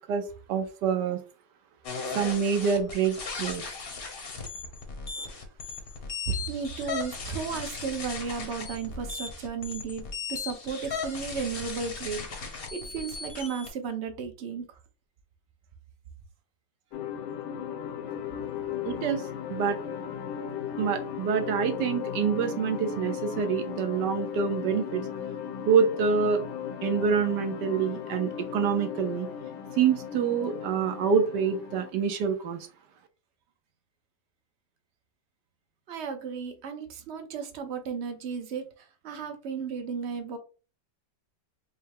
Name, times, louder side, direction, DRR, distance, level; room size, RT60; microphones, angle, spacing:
voice 1, 0.5-1.2 2.1-3.7 18.8-19.2 19.5-19.8 20.8-25.0 25.6-26.4 26.8-29.3 29.8-32.6, right 6 dB, 75° right, 8 dB, 1.2 m, -26 dB
sound 1, 1.8-13.7, left 5 dB, 45° left, 0.8 m, -37 dB
voice 2, 6.3-14.7 35.9-40.4, right 6 dB, 60° right, 6 dB, 0.7 m, -34 dB
sound 2, 16.9-31.9, left 8 dB, 70° left, 1.1 m, -36 dB
5.5 x 2.1 x 3.5 m, 0.34 s
omnidirectional pair, 2.0 m